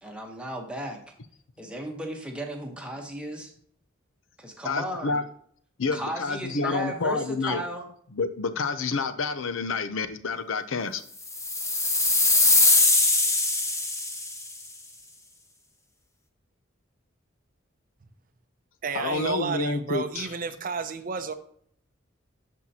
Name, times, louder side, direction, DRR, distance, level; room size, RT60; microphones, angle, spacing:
voice 1, 0.0-1.0 1.6-3.5 4.4-5.2 5.9-7.9, right 1 dB, 5° right, 1 dB, 1.1 m, -35 dB
voice 2, 4.6-5.2 5.8-7.6 8.2-11.0 18.9-20.3, left 4 dB, 85° left, 11 dB, 0.6 m, -28 dB
sound 1, 11.3-14.5, left 2 dB, 15° left, 1.0 m, -21 dB
voice 3, 18.8-21.3, right 5 dB, 45° right, 10 dB, 0.5 m, -31 dB
12.0 x 4.5 x 2.8 m, 0.62 s
head